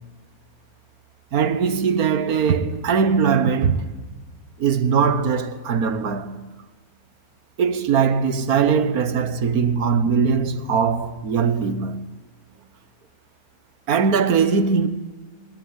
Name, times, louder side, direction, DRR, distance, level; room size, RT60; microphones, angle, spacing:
voice 1, 1.3-3.9 4.6-6.4 7.6-12.0 13.9-14.9, right 6 dB, 65° right, 1.7 m, -20 dB
23.0 x 19.5 x 9.7 m
omnidirectional pair, 1.7 m